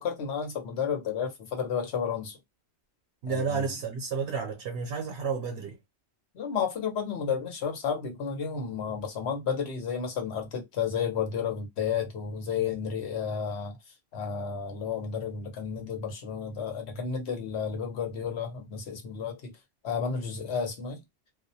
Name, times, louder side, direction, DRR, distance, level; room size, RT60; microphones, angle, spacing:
voice 1, 0.0-2.4 3.3-3.7 6.3-13.8 14.1-19.5 19.8-21.0, left 6 dB, 75° left, 1.1 m, -32 dB
voice 2, 3.2-5.8, right 5 dB, 75° right, 0.8 m, -31 dB
2.3 x 2.1 x 2.6 m
omnidirectional pair, 1.1 m